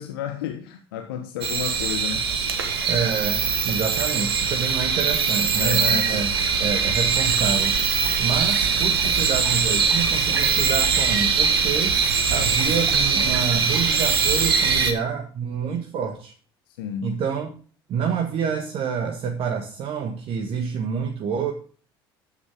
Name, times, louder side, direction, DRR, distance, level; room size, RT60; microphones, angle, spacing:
voice 1, 0.0-2.3 5.6-6.1 16.7-17.2, left 8 dB, 70° left, 5 dB, 1.3 m, -32 dB
sound 1, 1.4-14.9, right 5 dB, 80° right, 1.6 m, -22 dB
voice 2, 2.9-6.3 6.6-7.7 8.2-12.0 12.3-16.3 17.0-17.6 17.9-21.5, right 6 dB, 50° right, 4 dB, 1.7 m, -27 dB
11.5 x 8.6 x 3.7 m, 0.41 s
figure-of-eight pair, 60°, 13 cm